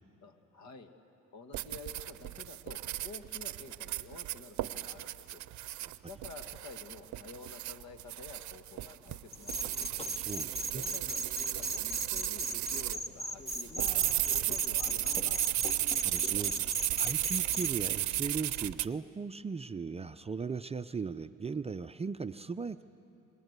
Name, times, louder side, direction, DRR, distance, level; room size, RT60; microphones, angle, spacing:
voice 1, 0.2-0.9 1.3-5.4 6.0-9.9 10.7-15.4, left 4 dB, 65° left, 7 dB, 1.8 m, -50 dB
sound 1, 1.5-13.0 13.5-18.9, right 15 dB, 70° right, 0.6 m, -34 dB
sound 2, 9.3-17.7, left 1 dB, 20° left, 0.8 m, -39 dB
voice 2, 10.2-10.8 15.9-22.8, right 5 dB, 20° right, 10 dB, 0.5 m, -38 dB
25.5 x 20.5 x 8.1 m, 2.9 s
cardioid pair, 105°, 30 cm